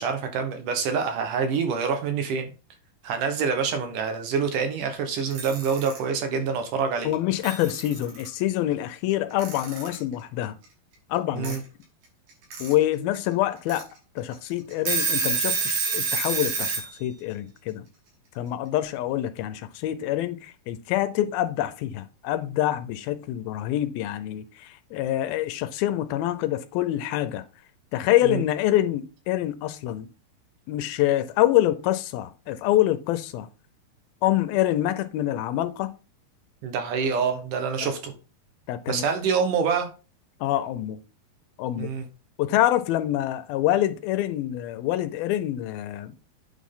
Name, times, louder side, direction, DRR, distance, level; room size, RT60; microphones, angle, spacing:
voice 1, 0.0-2.5 3.0-7.1 11.3-11.6 28.2-28.4 36.6-38.1 38.9-39.9 41.8-42.1, right 6 dB, 65° right, 2.6 m, -26 dB
Alarm / Clock, 5.2-6.0 7.1-7.2 7.4-8.3 9.4-10.0 11.4-11.6 12.3-12.7 13.2-13.3 13.7-13.8 14.3-14.4 14.7-16.9, right 5 dB, 85° right, 4.6 m, -27 dB
voice 2, 7.0-10.6 11.1-11.6 12.6-13.9 14.2-17.9 18.4-27.4 27.9-30.1 30.7-33.5 34.2-36.0 37.8-37.9 38.7-39.0 40.4-41.0 41.6-41.9 42.4-46.2, left 13 dB, 85° left, 2.6 m, -26 dB
8.9 x 6.3 x 3.7 m
omnidirectional pair, 4.2 m